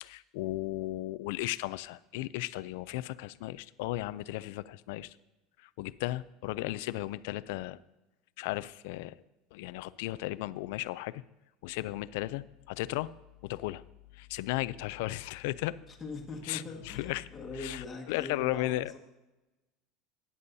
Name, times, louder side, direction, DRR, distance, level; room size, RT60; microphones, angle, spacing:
voice 1, 0.0-5.2 5.6-7.8 8.4-9.2 9.5-11.2 11.6-13.1 13.4-13.8 14.1-15.8 16.5-17.3 17.6-19.0, left 17 dB, 75° left, 18 dB, 0.3 m, -35 dB
voice 2, 15.9-19.0, left 3 dB, 15° left, 0 dB, 1.6 m, -42 dB
14.0 x 9.6 x 2.7 m, 1.1 s
cardioid pair, 160°, 0 cm